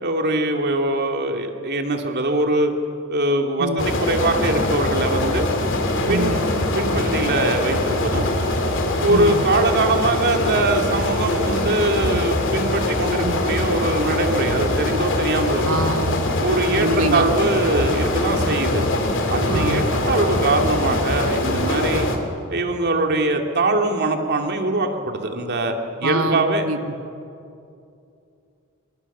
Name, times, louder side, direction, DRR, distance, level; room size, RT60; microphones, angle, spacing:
voice 1, 0.0-2.7 3.1-5.5 6.1-6.4 6.7-8.3 9.0-15.6 16.4-18.9 19.3-22.1 22.5-26.7, right 2 dB, 50° right, 3 dB, 2.5 m, -22 dB
sound 1, 3.8-22.2, left 1 dB, 60° left, 2.9 m, -22 dB
voice 2, 6.1-6.4 9.1-9.4 13.2-13.4 15.6-16.2 16.7-17.2 19.5-19.9 26.0-26.9, right 2 dB, 75° right, 7 dB, 1.4 m, -25 dB
24.5 x 24.0 x 7.3 m, 2.5 s
head